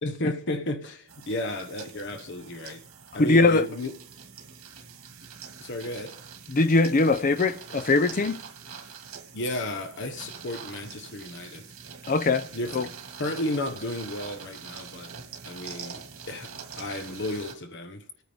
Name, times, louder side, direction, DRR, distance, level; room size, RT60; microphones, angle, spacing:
voice 1, 0.0-2.8 3.1-3.9 5.6-6.1 9.3-11.7 12.5-12.7 13.2-15.1 15.4-16.0 16.3-16.5 16.8-18.0, left 1 dB, 55° left, 1.1 m, -33 dB
sound 1, 1.1-17.6, right 6 dB, 90° right, 1.7 m, -44 dB
voice 2, 3.2-3.7 6.5-8.4 12.1-12.5 12.7-12.9, left 3 dB, 40° left, 0.6 m, -21 dB
26.5 x 9.2 x 3.5 m
head